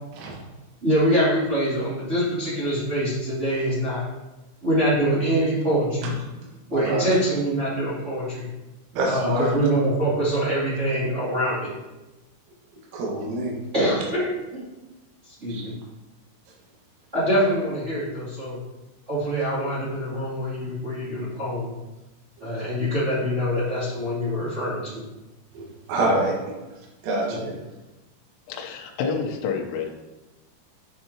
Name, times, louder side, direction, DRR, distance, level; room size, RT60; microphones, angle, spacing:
voice 1, 0.8-4.0 4.6-6.1 6.7-8.4 9.1-11.7 13.7-14.6 15.4-15.7 17.1-18.6 19.1-21.7 22.4-25.0 27.3-27.5, equal, 25° right, -10 dB, 1.7 m, -24 dB
voice 2, 6.7-7.0 8.9-9.5 12.9-13.6 15.5-15.6 25.6-25.7 25.9-26.5 27.0-27.5, right 2 dB, 80° right, -2 dB, 4.1 m, -25 dB
voice 3, 28.5-29.9, left 5 dB, 80° left, 1 dB, 3.2 m, -28 dB
8.7 x 6.7 x 2.9 m, 1.1 s
omnidirectional pair, 5.8 m